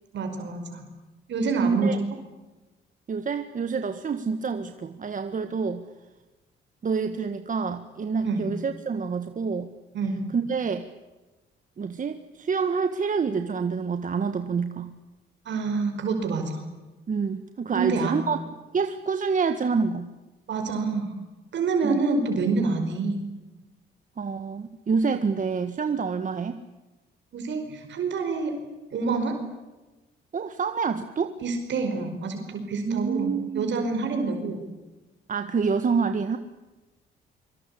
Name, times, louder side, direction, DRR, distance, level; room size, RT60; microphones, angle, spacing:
voice 1, 0.1-0.8 1.3-2.0 8.3-8.5 9.9-10.3 15.5-16.6 17.7-18.1 20.5-21.1 21.5-23.2 27.3-28.5 28.9-29.3 31.4-34.6, right 4 dB, 65° right, 4 dB, 5.2 m, -27 dB
voice 2, 1.6-2.0 3.1-5.8 6.8-9.7 10.3-10.8 11.8-14.9 17.1-18.4 18.7-20.1 21.8-22.0 24.2-26.6 30.3-31.3 32.9-33.8 35.3-36.4, right 5 dB, 40° right, 8 dB, 1.7 m, -27 dB
24.5 x 24.5 x 8.6 m, 1.1 s
cardioid pair, 90°, 20 cm